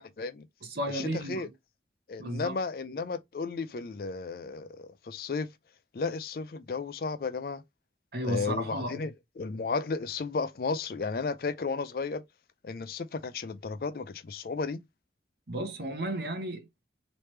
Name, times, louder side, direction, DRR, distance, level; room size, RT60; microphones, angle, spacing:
voice 1, 0.0-0.5 0.9-1.5 2.1-5.5 5.9-7.6 8.2-12.2 12.6-14.8, left 4 dB, 55° left, 0.4 m, -34 dB
voice 2, 0.6-1.5 2.2-2.6 8.1-9.0 15.5-16.7, right 1 dB, 60° right, 0.9 m, -33 dB
3.3 x 3.0 x 3.1 m
head